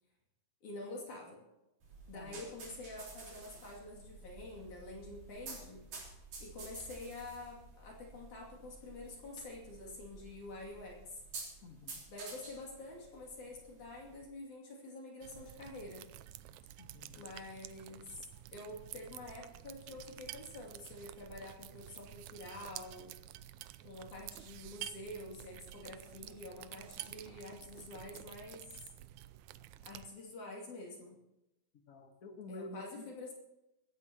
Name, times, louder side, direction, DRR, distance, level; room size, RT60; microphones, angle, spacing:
voice 1, 0.6-1.4 2.1-5.8 6.4-11.2 12.1-16.0 17.1-18.3 18.5-23.1 23.8-28.9 29.8-31.2 32.5-33.3, left 2 dB, 65° left, -2 dB, 4.1 m, -47 dB
sound 1, 1.8-14.2, right 3 dB, 65° right, 4.9 m, -51 dB
voice 2, 2.1-2.4 11.6-12.0 16.8-17.3 31.9-33.0, left 2 dB, 45° left, 5 dB, 1.1 m, -49 dB
sound 2, 15.2-30.1, right 14 dB, 80° right, 1.8 m, -50 dB
24.5 x 13.5 x 3.0 m, 0.95 s
omnidirectional pair, 3.7 m